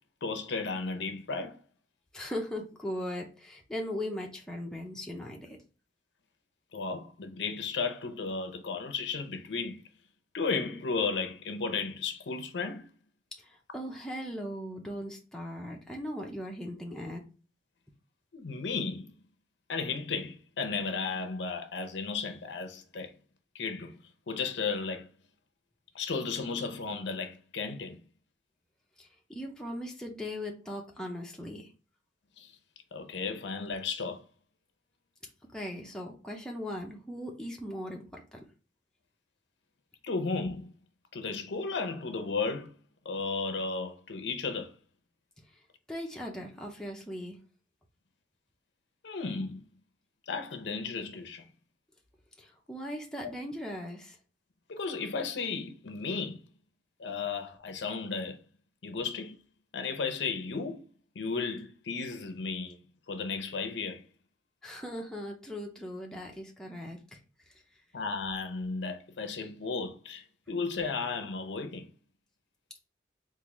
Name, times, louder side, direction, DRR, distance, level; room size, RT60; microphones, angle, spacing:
voice 1, 0.2-1.6 6.7-9.8 10.3-12.9 18.3-19.1 19.7-23.1 23.5-24.0 24.3-25.1 25.9-28.0 32.4-32.5 32.9-34.2 40.0-40.7 41.1-42.7 43.0-44.7 49.0-49.7 50.3-51.5 54.7-56.4 57.0-58.4 58.8-59.4 59.7-60.8 61.2-62.8 63.1-64.0 67.9-71.9, left 4 dB, 75° left, 0.6 m, -34 dB
voice 2, 2.1-5.6 13.4-17.2 29.0-31.7 35.5-38.4 45.9-47.4 52.4-54.2 64.6-67.2, equal, 5° left, 0.5 m, -39 dB
3.7 x 2.5 x 3.0 m
head